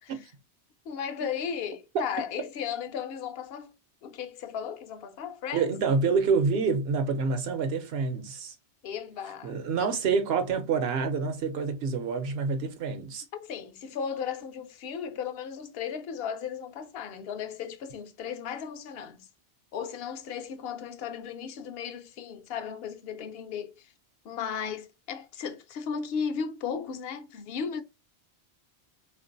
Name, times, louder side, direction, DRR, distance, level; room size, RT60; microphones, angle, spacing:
voice 1, 0.9-3.7 4.0-5.7 8.8-9.9 13.3-19.3 19.7-23.9 24.2-27.8, left 7 dB, 65° left, 0.8 m, -35 dB
voice 2, 5.5-8.5 9.4-13.2, right 5 dB, 65° right, 0.9 m, -27 dB
3.6 x 2.5 x 2.5 m
omnidirectional pair, 1.1 m